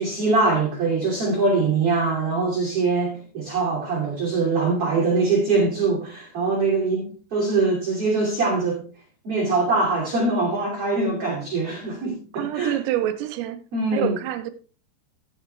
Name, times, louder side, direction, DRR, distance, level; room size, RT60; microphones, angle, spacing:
voice 1, 0.0-8.8 9.2-12.8 13.7-14.2, right 3 dB, 35° right, 3.0 m, -23 dB
voice 2, 12.3-13.6 13.9-14.5, right 13 dB, 85° right, 3.6 m, -26 dB
15.5 x 7.9 x 3.3 m
omnidirectional pair, 5.9 m